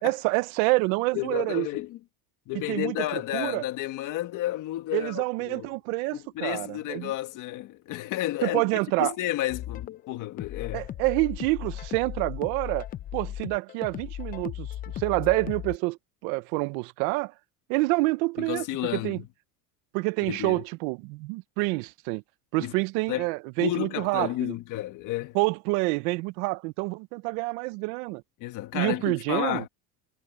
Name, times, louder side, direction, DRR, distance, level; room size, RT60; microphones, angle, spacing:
voice 1, 0.0-1.7 2.7-3.6 4.9-7.1 8.4-9.1 10.7-12.9 13.1-14.7 14.9-16.0 16.2-17.3 17.7-18.6 18.9-19.2 19.9-22.2 22.5-24.5 25.3-28.2 28.7-29.6, right 25 dB, 85° right, 0.8 m, -27 dB
voice 2, 1.1-2.0 2.5-5.7 6.1-8.6 9.0-10.9 18.4-19.2 20.2-20.6 22.6-22.7 23.1-23.3 23.6-25.4 28.4-29.7, left 15 dB, 45° left, 1.6 m, -31 dB
sound 1, 9.5-15.8, left 11 dB, 25° left, 0.3 m, -37 dB
cardioid pair, 170°, 42 cm